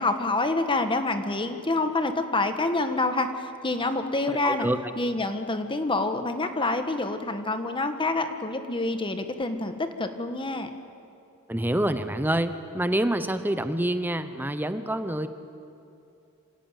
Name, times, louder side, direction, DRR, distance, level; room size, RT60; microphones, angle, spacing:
voice 1, 0.0-4.7 5.0-10.7, left 2 dB, 25° left, 8 dB, 1.4 m, -27 dB
voice 2, 4.4-5.1 11.5-15.3, right 1 dB, 10° right, 10 dB, 0.9 m, -27 dB
26.5 x 16.0 x 9.1 m, 2.7 s
head